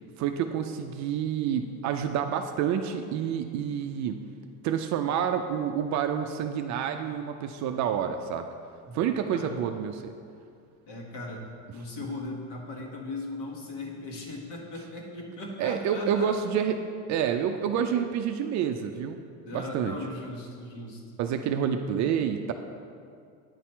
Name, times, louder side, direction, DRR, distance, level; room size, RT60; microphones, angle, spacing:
voice 1, 0.2-4.2 4.6-8.5 8.9-10.1 15.6-16.8 17.1-19.2 19.5-20.0 21.2-22.5, right 8 dB, 40° right, 6 dB, 0.4 m, -28 dB
voice 2, 10.9-11.4 11.7-16.3 19.4-21.2, left 2 dB, 60° left, -2 dB, 1.8 m, -38 dB
9.4 x 4.2 x 4.5 m, 2.4 s
hypercardioid pair, 95°, 46 cm